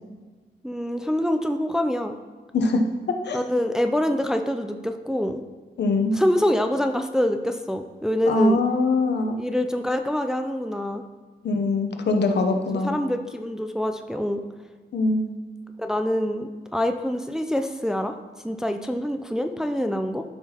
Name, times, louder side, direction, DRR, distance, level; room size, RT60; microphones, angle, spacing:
voice 1, 0.6-2.1 3.3-5.4 6.1-8.6 9.4-11.0 12.8-14.4 15.8-18.1 18.4-20.2, left 1 dB, 5° right, 6 dB, 0.3 m, -25 dB
voice 2, 5.8-6.1 8.2-9.4 11.4-13.0 14.9-15.3, left 2 dB, 80° left, 4 dB, 0.8 m, -22 dB
12.5 x 5.7 x 2.9 m, 1.4 s
wide cardioid pair, 160°, 18 cm